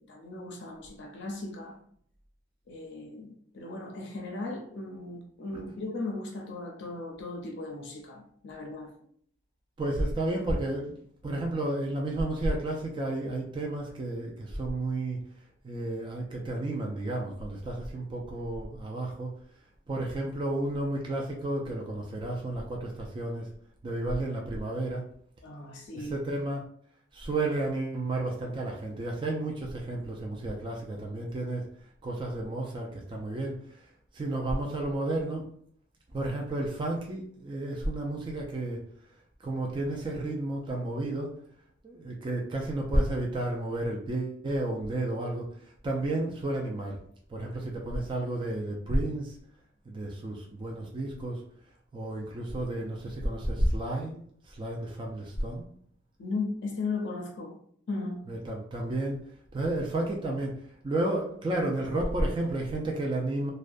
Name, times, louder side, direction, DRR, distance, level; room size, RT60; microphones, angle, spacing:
voice 1, 0.0-1.8 2.7-8.9 25.4-26.1 56.2-57.6 57.9-58.2, left 3 dB, 65° left, 1 dB, 0.5 m, -37 dB
voice 2, 9.8-15.2 15.6-19.3 19.9-23.5 23.8-25.0 25.9-26.6 27.1-31.6 32.0-33.6 34.1-35.4 36.1-38.8 39.4-41.3 41.8-45.5 45.8-47.0 47.3-49.4 49.9-51.4 51.9-55.7 58.3-59.2 59.5-63.5, right 1 dB, 25° right, -1 dB, 0.3 m, -31 dB
2.3 x 2.1 x 2.5 m, 0.62 s
head